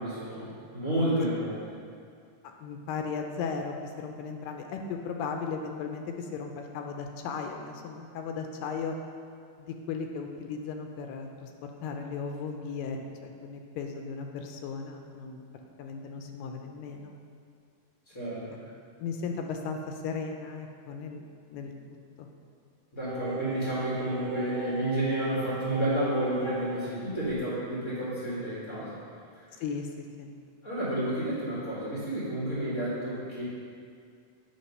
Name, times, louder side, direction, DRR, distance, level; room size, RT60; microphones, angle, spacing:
voice 1, 0.0-1.8 18.1-18.4 22.9-29.0 29.3-29.6 30.6-33.4, right 1 dB, 45° left, -10 dB, 0.9 m, -31 dB
voice 2, 2.4-9.0 9.6-11.5 11.8-15.4 15.8-17.1 18.5-18.6 19.0-22.3 29.6-30.3, left 5 dB, 80° left, 3 dB, 2.2 m, -36 dB
Singing, 23.1-26.9 27.3-27.4, right 4 dB, 75° right, 1.9 m, -37 dB
8.3 x 3.7 x 5.3 m, 2.3 s
omnidirectional pair, 4.0 m